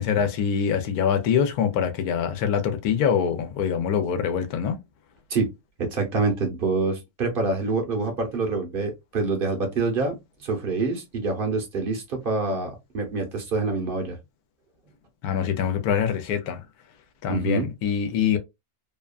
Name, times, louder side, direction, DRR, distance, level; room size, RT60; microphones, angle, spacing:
voice 1, 0.0-4.8 15.2-16.6 17.2-18.4, left 7 dB, 85° left, 1.1 m, -24 dB
voice 2, 5.8-14.2 17.3-17.7, right 3 dB, 50° right, 0.8 m, -26 dB
2.8 x 2.2 x 2.3 m
omnidirectional pair, 1.6 m